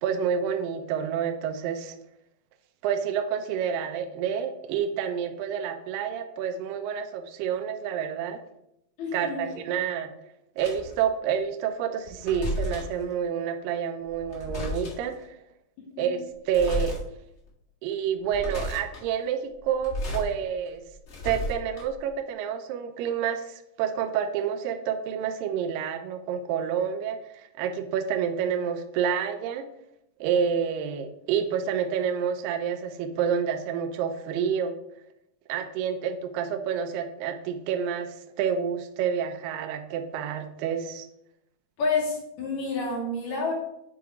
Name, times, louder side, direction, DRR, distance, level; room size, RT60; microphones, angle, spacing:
voice 1, 0.0-2.0 2.8-8.4 9.1-10.1 10.6-15.3 16.0-17.0 17.8-20.8 21.2-29.7 30.2-34.7 35.5-41.1, right 8 dB, 80° right, 6 dB, 2.2 m, -29 dB
voice 2, 9.0-9.6 16.0-16.1 41.8-43.5, left 3 dB, 60° left, -3 dB, 2.4 m, -29 dB
sound 1, 10.6-11.0 12.1-13.0 14.1-15.1 16.5-17.0 17.5-17.6 18.2-19.0 19.7-20.3 20.7-22.1, left 1 dB, 40° left, 1.7 m, -33 dB
7.8 x 2.6 x 4.7 m, 0.79 s
omnidirectional pair, 4.1 m